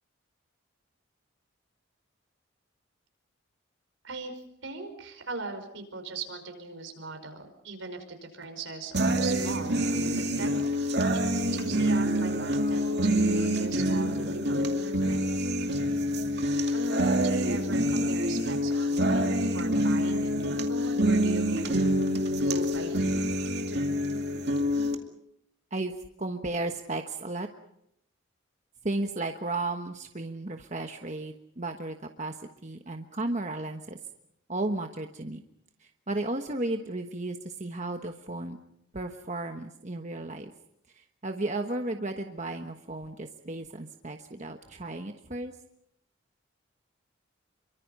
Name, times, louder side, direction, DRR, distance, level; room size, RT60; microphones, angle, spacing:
voice 1, 4.0-9.9 10.4-10.5 11.1-15.5 16.7-21.8 22.3-23.3, right 3 dB, 75° right, 7 dB, 5.3 m, -40 dB
sound 1, 8.9-25.0, equal, 55° right, 2.4 m, -26 dB
voice 2, 25.7-27.5 28.8-34.0 34.5-35.4 35.8-38.6 38.9-40.5 40.9-45.5, right 2 dB, 35° right, 5 dB, 1.2 m, -34 dB
27.5 x 24.5 x 5.5 m, 0.73 s
head